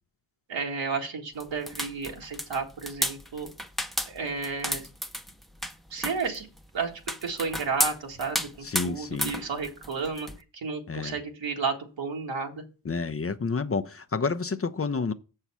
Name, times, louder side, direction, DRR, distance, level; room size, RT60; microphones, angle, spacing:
voice 1, 0.5-3.5 4.1-4.9 5.9-6.5 6.7-10.3 10.6-12.6, right 4 dB, 85° right, 1.8 m, -32 dB
sound 1, 1.4-10.4, equal, ahead, 0.7 m, -33 dB
voice 2, 8.6-9.3 10.9-11.2 12.8-15.1, left 4 dB, 30° left, 0.7 m, -29 dB
6.9 x 5.5 x 6.1 m
cardioid pair, 50°, 44 cm